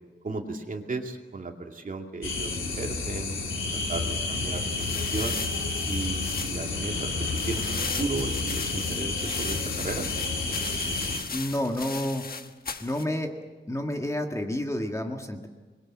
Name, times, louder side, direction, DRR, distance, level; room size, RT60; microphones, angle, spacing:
voice 1, 0.2-5.4 5.8-7.1 7.5-10.1, right 3 dB, 45° right, 2 dB, 2.5 m, -35 dB
sound 1, 2.2-11.2, left 3 dB, 80° left, 3.9 m, -30 dB
sound 2, 4.5-13.0, left 4 dB, 50° left, 1.3 m, -37 dB
voice 2, 11.3-12.2 12.8-13.3 13.7-15.5, left 1 dB, 15° left, 3 dB, 1.9 m, -29 dB
27.0 x 22.0 x 7.6 m, 1.3 s
wide cardioid pair, 170°, 20 cm